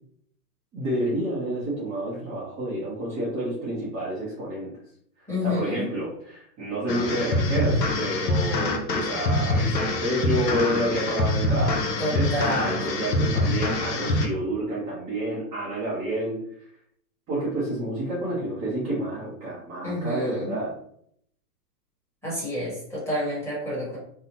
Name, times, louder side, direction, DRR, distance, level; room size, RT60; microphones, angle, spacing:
voice 1, 0.7-4.7 5.2-16.4 17.3-20.7, right 1 dB, 15° right, -9 dB, 0.5 m, -29 dB
voice 2, 5.3-5.9 12.0-12.8 19.8-20.5 22.2-24.0, left 1 dB, 5° left, -8 dB, 1.1 m, -29 dB
sound 1, 6.9-14.3, left 2 dB, 90° left, 0.6 m, -25 dB
2.7 x 2.0 x 2.8 m, 0.67 s
hypercardioid pair, 120°, 49 cm